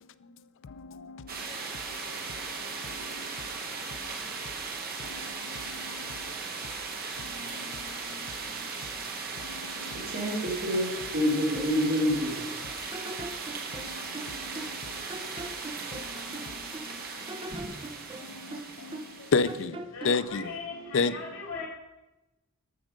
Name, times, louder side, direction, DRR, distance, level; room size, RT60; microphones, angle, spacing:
voice 1, 0.6-4.4 5.0-6.3 7.2-8.5 9.4-10.1 12.8-13.1 13.7-15.0 15.9-17.3 18.2-20.5 20.9-21.1, left 4 dB, 60° left, 0.5 m, -35 dB
sound 1, 1.3-19.7, right 4 dB, 45° right, 1.5 m, -38 dB
voice 2, 9.7-12.4, equal, 60° right, 3.2 m, -28 dB
sound 2, 11.5-12.6 12.9-14.8 15.1-16.9 17.3-19.2 19.5-20.3, right 1 dB, 25° right, 0.7 m, -41 dB
voice 3, 19.9-21.7, left 4 dB, 85° left, 1.8 m, -39 dB
13.5 x 6.3 x 5.1 m
head